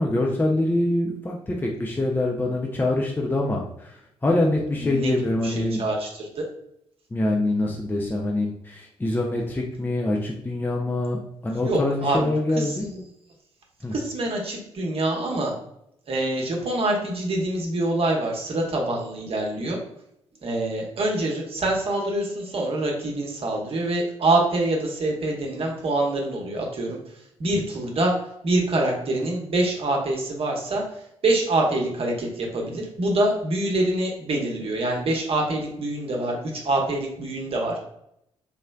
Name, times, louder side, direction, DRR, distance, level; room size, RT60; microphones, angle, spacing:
voice 1, 0.0-5.8 7.1-12.8 13.8-13.9, left 1 dB, 15° left, -1 dB, 0.5 m, -25 dB
voice 2, 4.8-5.1 5.4-6.4 11.6-13.0 13.9-15.5 16.1-19.8 20.4-27.0 27.4-28.2 28.4-30.8 31.2-37.8, right 2 dB, 40° right, 0 dB, 1.0 m, -25 dB
3.6 x 3.1 x 2.3 m, 0.77 s
figure-of-eight pair, 45°, 15 cm